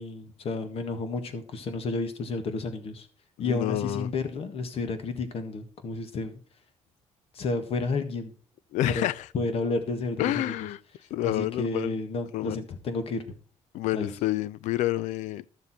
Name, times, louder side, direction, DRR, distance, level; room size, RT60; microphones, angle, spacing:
voice 1, 0.0-3.1 3.4-6.4 7.3-8.3 8.8-9.1 9.3-10.5 11.2-13.3 13.9-14.1, left 3 dB, 55° left, 1.6 m, -31 dB
voice 2, 3.4-4.1 8.7-9.3 10.2-10.8 11.1-11.9 12.3-12.6 13.7-15.4, left 15 dB, 90° left, 0.5 m, -28 dB
12.0 x 7.0 x 4.2 m
cardioid pair, 125°, 12 cm